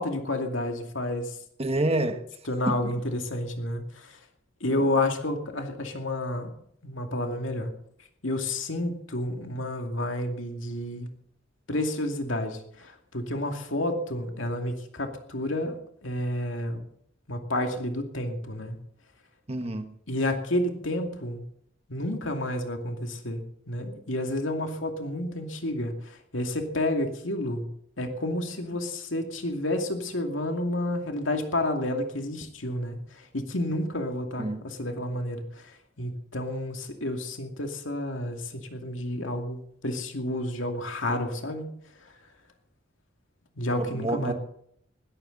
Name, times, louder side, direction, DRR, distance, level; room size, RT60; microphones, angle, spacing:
voice 1, 0.0-1.3 2.5-4.2 4.6-6.5 6.8-7.7 8.2-11.1 11.7-16.8 17.3-18.8 20.1-21.4 21.9-27.7 28.0-35.6 36.0-41.7 43.6-44.3, left 1 dB, 80° left, 2.4 m, -30 dB
voice 2, 1.6-2.2 2.7-2.9 19.5-19.9 34.4-34.6 43.8-44.3, right 1 dB, 30° right, 1.3 m, -28 dB
20.0 x 13.5 x 4.0 m
head